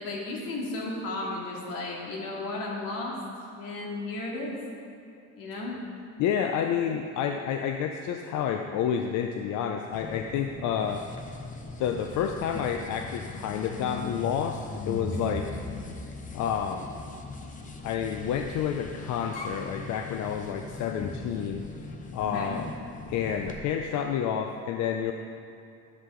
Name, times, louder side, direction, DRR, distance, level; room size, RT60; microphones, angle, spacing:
voice 1, 0.0-3.2 3.6-4.6 5.4-5.7 15.1-15.4 22.2-22.6, left 2 dB, 70° left, -3 dB, 2.3 m, -34 dB
voice 2, 6.2-11.0 11.8-15.4 16.3-16.9 17.8-21.6 22.1-22.7 23.1-25.1, left 8 dB, 55° left, 4 dB, 0.5 m, -29 dB
sound 1, 9.9-23.6, left 3 dB, 20° left, 0.7 m, -39 dB
11.0 x 7.6 x 3.8 m, 2.6 s
cardioid pair, 130°, 35 cm